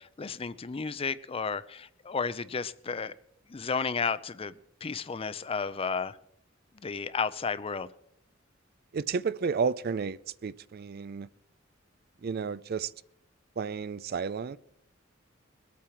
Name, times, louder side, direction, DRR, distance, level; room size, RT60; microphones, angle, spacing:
voice 1, 0.0-3.1 3.5-4.5 4.8-6.2 6.8-7.9, left 5 dB, 30° left, 0.5 m, -32 dB
voice 2, 8.9-11.3 12.2-12.9 13.6-14.6, right 5 dB, 50° right, 0.4 m, -32 dB
21.5 x 8.5 x 4.5 m
head